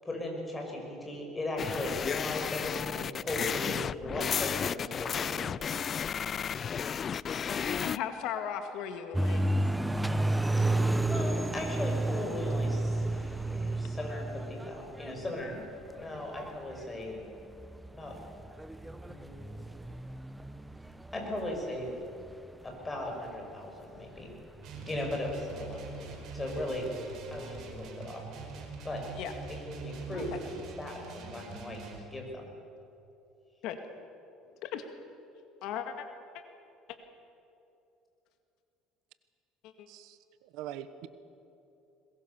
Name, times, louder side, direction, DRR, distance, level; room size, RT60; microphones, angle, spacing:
voice 1, 0.0-5.6 10.6-15.6 16.0-17.2 17.9-18.1 18.8-19.4 21.1-21.9 22.6-24.3 24.8-26.9 27.3-28.2 28.8-29.0 29.5-32.4, left 1 dB, 15° left, 1 dB, 5.9 m, -38 dB
sound 1, 1.6-8.0, left 7 dB, 35° left, 0.4 m, -33 dB
voice 2, 7.8-9.5 29.2-29.3 30.1-30.2 33.6-33.8 34.6-34.8 35.6-36.1 36.3-36.4 39.6-39.9, left 9 dB, 70° left, 7 dB, 1.9 m, -37 dB
sound 2, 9.1-23.1 23.7-23.8 24.2-26.8 27.1-27.9, right 2 dB, 5° right, 0.9 m, -32 dB
sound 3, 24.6-32.1, right 4 dB, 55° right, 4.6 m, -43 dB
voice 3, 39.9-41.1, right 11 dB, 75° right, 12 dB, 1.2 m, -43 dB
22.0 x 21.0 x 7.0 m, 2.8 s
cardioid pair, 120°, 0 cm